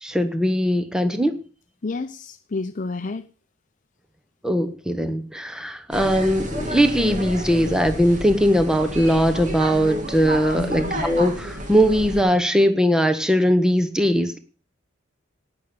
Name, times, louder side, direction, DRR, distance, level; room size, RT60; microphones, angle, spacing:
voice 1, 0.0-1.3 4.4-14.4, equal, 5° right, 9 dB, 1.0 m, -20 dB
voice 2, 1.8-3.2 10.5-11.0, left 3 dB, 40° left, 9 dB, 0.5 m, -30 dB
sound 1, 5.9-12.2, equal, 40° right, 2.5 m, -30 dB
18.0 x 6.8 x 6.9 m, 0.41 s
head